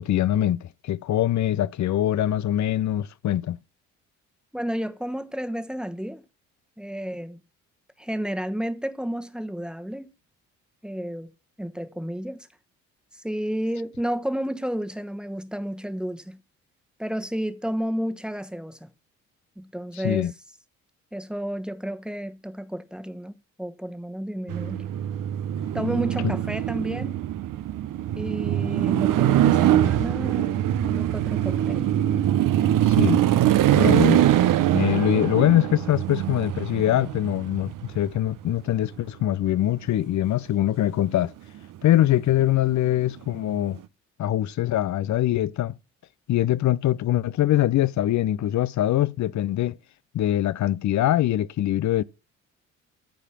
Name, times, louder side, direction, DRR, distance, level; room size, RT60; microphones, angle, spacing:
voice 1, 0.0-3.6 19.9-20.3 32.8-33.2 33.7-34.3 34.7-41.3 41.8-43.8 44.2-45.8 46.3-49.8 50.1-52.0, left 13 dB, 50° left, 0.7 m, -23 dB
voice 2, 4.5-6.2 6.8-7.4 8.0-10.1 10.8-11.3 11.6-12.5 13.1-16.4 17.0-18.9 19.6-20.3 21.1-24.9 25.7-27.1 28.1-32.0, equal, ahead, 1.4 m, -31 dB
sound 1, 24.5-38.5 42.9-43.3, right 12 dB, 60° right, 0.9 m, -23 dB
14.0 x 5.0 x 7.4 m
hypercardioid pair, 50°, 37 cm